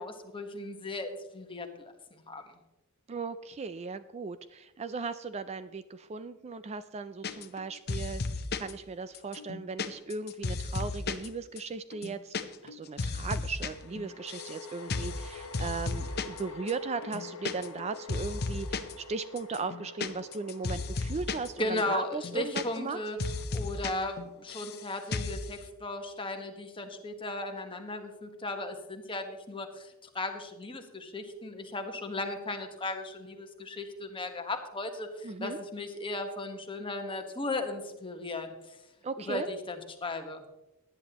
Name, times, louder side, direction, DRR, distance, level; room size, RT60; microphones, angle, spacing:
voice 1, 0.0-1.7 2.3-2.4 21.6-23.2 23.5-38.8 39.2-40.4, left 2 dB, 25° left, 4 dB, 1.4 m, -36 dB
voice 2, 3.1-8.2 8.5-12.3 12.6-23.1 35.2-35.6 39.0-39.5, right 4 dB, 30° right, 12 dB, 0.4 m, -37 dB
sound 1, 7.2-7.6 7.9-8.7 9.1-11.3 11.6-11.7 11.9-12.4 12.7-13.7 14.0-14.6 14.9-15.2 15.5-16.4 16.7-16.8 17.0-17.8 18.1-18.9 19.4-21.5 21.8-21.9 22.1-22.9 23.2-23.9 24.2-24.8 25.1-25.4, left 3 dB, 45° left, 0.8 m, -34 dB
sound 2, 10.6-10.7 13.6-25.0, left 3 dB, 70° left, 1.4 m, -48 dB
18.0 x 10.5 x 3.0 m, 0.96 s
head